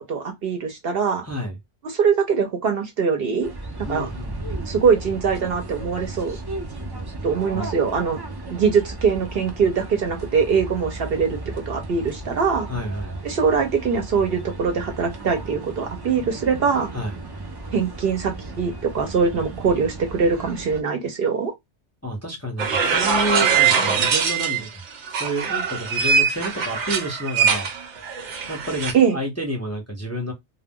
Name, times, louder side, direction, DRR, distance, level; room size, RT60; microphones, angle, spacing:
voice 1, 0.1-1.3 1.8-3.5 3.9-4.1 4.7-6.4 7.2-8.2 8.5-11.4 11.7-12.7 13.2-16.9 17.7-21.5 28.9-29.2, right 6 dB, 60° right, 0.8 m, -22 dB
voice 2, 1.2-1.6 3.9-4.5 7.3-7.7 12.7-13.2 16.9-17.2 22.0-24.8 25.1-27.7 28.5-30.3, right 1 dB, 15° left, 0.6 m, -30 dB
sound 1, 3.4-20.8, right 2 dB, 40° right, 0.3 m, -35 dB
sound 2, 22.6-24.7 25.1-28.9, right 6 dB, 85° right, 1.0 m, -22 dB
2.2 x 2.1 x 3.5 m
omnidirectional pair, 1.2 m